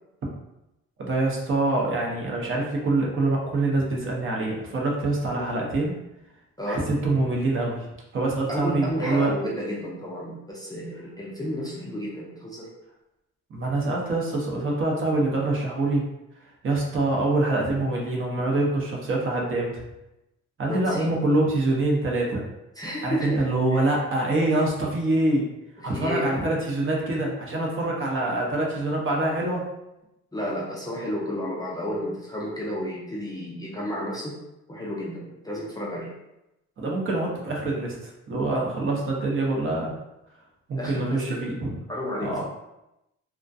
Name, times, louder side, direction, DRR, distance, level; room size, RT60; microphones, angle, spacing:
voice 1, 1.0-6.0 6.7-7.8 8.1-9.3 13.5-16.0 16.6-19.8 20.6-22.4 23.0-25.4 25.8-29.6 36.8-39.9 40.7-41.7 42.2-42.4, right 2 dB, 45° right, -2 dB, 0.7 m, -25 dB
voice 2, 8.5-12.7 20.7-21.2 22.8-23.5 23.7-23.8 25.8-26.3 30.3-34.4 34.7-36.1 40.8-41.4 41.9-42.4, equal, 15° left, -5 dB, 0.4 m, -31 dB
2.4 x 2.1 x 2.5 m, 0.91 s
cardioid pair, 90°, 30 cm